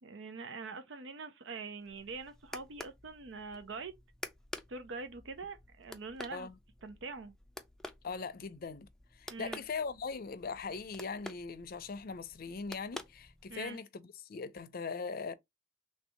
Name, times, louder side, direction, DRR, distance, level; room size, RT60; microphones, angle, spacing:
voice 1, 0.0-3.9 4.7-6.5 6.8-7.3 9.3-9.7 13.5-13.8, right 4 dB, 90° right, 0.6 m, -44 dB
sound 1, 1.8-13.8, left 1 dB, 5° left, 0.4 m, -50 dB
voice 2, 8.0-8.9 9.2-15.3, left 4 dB, 55° left, 0.5 m, -40 dB
3.2 x 2.7 x 4.3 m
head